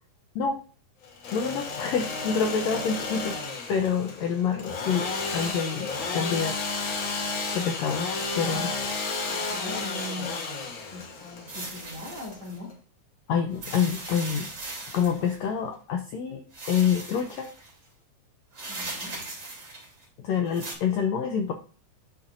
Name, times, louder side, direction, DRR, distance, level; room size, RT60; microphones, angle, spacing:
Engine / Sawing, 1.0-12.7, left 4 dB, 60° left, 1.4 m, -32 dB
voice 1, 1.3-3.4 3.7-6.6 7.5-8.7 13.3-14.5 14.9-17.5 20.2-21.5, left 7 dB, 75° left, 4 dB, 1.6 m, -27 dB
sound 1, 9.1-10.4 11.5-12.6 13.5-15.5 16.5-17.7 18.5-20.0 20.5-20.7, right 2 dB, 35° right, 3.3 m, -39 dB
voice 2, 9.3-12.8 18.5-19.2, left 1 dB, 60° right, -4 dB, 3.8 m, -41 dB
11.5 x 4.3 x 2.5 m, 0.39 s
omnidirectional pair, 3.7 m